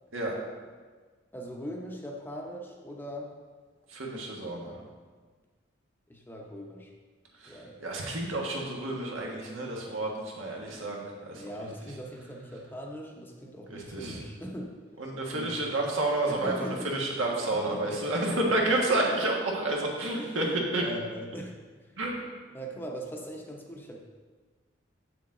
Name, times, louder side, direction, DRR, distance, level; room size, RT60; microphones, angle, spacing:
voice 1, 1.3-3.4 6.1-6.9 7.5-7.8 11.3-14.8 15.3-15.6 16.3-17.0 17.5-18.3 20.2-21.6 21.8-22.0 22.5-24.0, equal, 10° left, 0 dB, 0.7 m, -40 dB
voice 2, 3.9-4.8 7.4-11.4 13.7-14.2 15.0-20.4 20.7-20.8 22.0-22.2, right 2 dB, 90° right, -2 dB, 1.6 m, -30 dB
7.5 x 6.8 x 3.8 m, 1.4 s
head